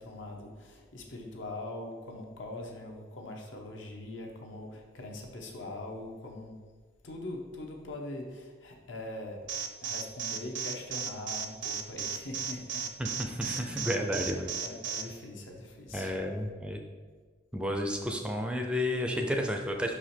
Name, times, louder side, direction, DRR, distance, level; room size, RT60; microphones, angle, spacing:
voice 1, 0.0-6.6 7.0-9.5 9.8-12.9 13.4-14.0 14.6-16.1, left 2 dB, 80° left, 2 dB, 1.1 m, -42 dB
Alarm, 9.5-15.0, right 7 dB, 75° right, 0.6 m, -34 dB
voice 2, 13.0-14.5 15.9-16.8 17.5-20.0, equal, 5° right, 3 dB, 0.4 m, -31 dB
5.7 x 4.9 x 4.4 m, 1.5 s
head